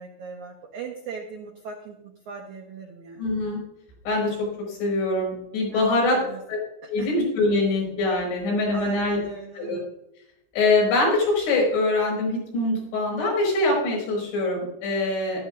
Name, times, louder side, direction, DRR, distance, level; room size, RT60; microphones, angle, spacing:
voice 1, 0.0-2.0 2.3-3.2 5.7-5.9 6.1-6.4 7.0-7.1 8.7-9.7, right 5 dB, 85° right, 1 dB, 1.7 m, -38 dB
voice 2, 3.2-3.6 4.1-6.2 6.5-6.6 6.9-9.2 9.5-9.8 10.5-15.5, left 2 dB, 80° left, -2 dB, 7.4 m, -23 dB
14.5 x 13.0 x 2.5 m, 0.85 s
omnidirectional pair, 5.2 m